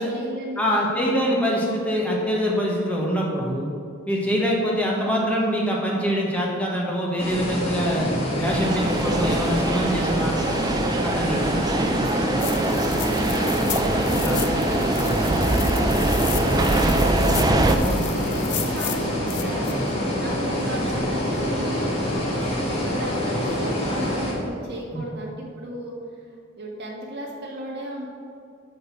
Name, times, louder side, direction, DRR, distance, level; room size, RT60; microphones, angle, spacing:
voice 1, 0.0-1.6 11.5-14.7 15.0-17.6 18.3-19.0 19.3-21.9 22.7-28.1, right 1 dB, 55° right, -3 dB, 1.9 m, -36 dB
voice 2, 0.6-3.7 4.1-10.4 11.0-11.4 14.2-14.4 17.8-18.1 24.9-25.0, equal, 5° left, -3 dB, 1.4 m, -24 dB
sound 1, 7.2-24.3, equal, 30° left, 2.0 m, -26 dB
sound 2, 8.5-17.8, right 2 dB, 20° right, 0.4 m, -23 dB
sound 3, 12.4-19.7, left 7 dB, 55° left, 0.7 m, -34 dB
7.3 x 6.5 x 6.0 m, 2.4 s
head